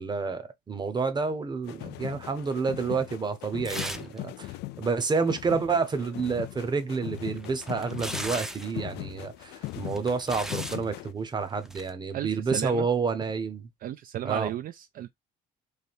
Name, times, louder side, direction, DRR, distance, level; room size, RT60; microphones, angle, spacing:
voice 1, 0.0-13.7 14.2-14.5, right 4 dB, 25° right, 0.8 m, -29 dB
sound 1, 1.7-11.1, left 18 dB, 80° left, 0.4 m, -40 dB
sound 2, 3.6-4.2 4.4-4.5 6.9-8.7 9.7-10.8 11.6-11.9, equal, 5° right, 0.5 m, -37 dB
voice 2, 12.1-12.9 13.8-15.1, right 12 dB, 55° right, 0.4 m, -33 dB
3.3 x 2.7 x 4.2 m
cardioid pair, 110°, 17 cm